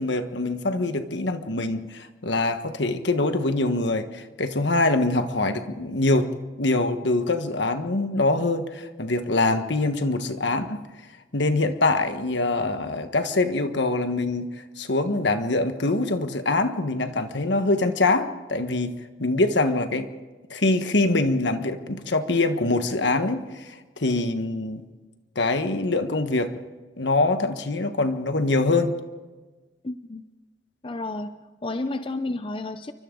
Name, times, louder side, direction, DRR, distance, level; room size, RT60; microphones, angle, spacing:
voice 1, 0.0-6.3 6.6-10.8 11.3-14.5 14.8-18.9 19.2-20.1 20.5-24.9 25.3-26.5 27.0-29.0, left 2 dB, 75° left, 8 dB, 1.4 m, -24 dB
voice 2, 29.8-30.2 30.8-32.9, left 2 dB, 30° left, 9 dB, 0.6 m, -31 dB
28.5 x 24.5 x 3.9 m, 1.3 s
head